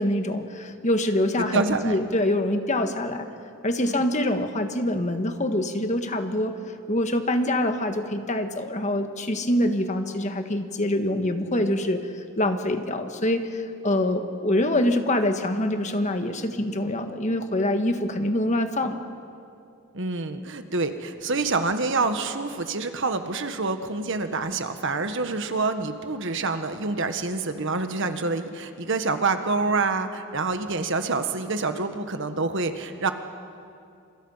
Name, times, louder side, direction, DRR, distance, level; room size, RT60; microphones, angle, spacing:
voice 1, 0.0-3.3 3.6-19.1, left 1 dB, 30° left, 7 dB, 1.4 m, -25 dB
voice 2, 1.5-2.0 3.8-4.0 19.9-33.1, right 3 dB, 55° right, 8 dB, 1.5 m, -27 dB
29.0 x 27.5 x 5.7 m, 2.5 s
head